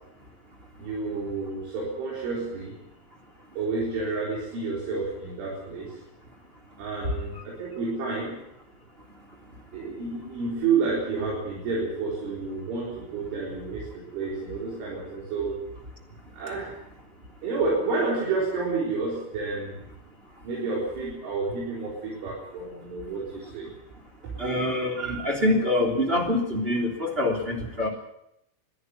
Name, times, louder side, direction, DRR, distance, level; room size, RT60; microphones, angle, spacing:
voice 1, 0.8-2.8 3.6-6.0 6.8-8.4 9.7-15.6 16.3-16.8 17.4-19.8 20.4-23.7, right 4 dB, 75° right, -4 dB, 6.8 m, -30 dB
voice 2, 24.4-27.9, left 1 dB, 15° right, 0 dB, 2.5 m, -25 dB
22.0 x 13.5 x 9.6 m, 0.80 s
omnidirectional pair, 5.6 m